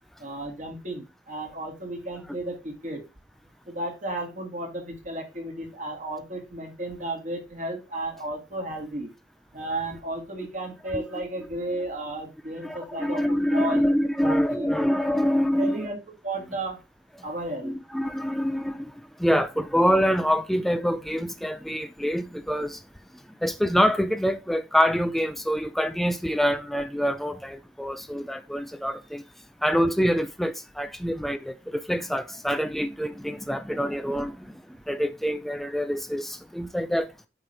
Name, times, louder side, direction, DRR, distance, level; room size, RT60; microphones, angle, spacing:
voice 1, 0.2-3.1 3.7-9.1 9.5-13.9 14.2-14.7 15.5-16.0 16.2-16.8 17.2-17.8, right 1 dB, 40° right, 1.8 m, -33 dB
voice 2, 12.6-15.9 17.6-18.9 19.2-22.8 23.4-29.2 29.6-34.6 34.9-37.1, equal, ahead, 0.3 m, -25 dB
8.7 x 3.3 x 4.3 m
head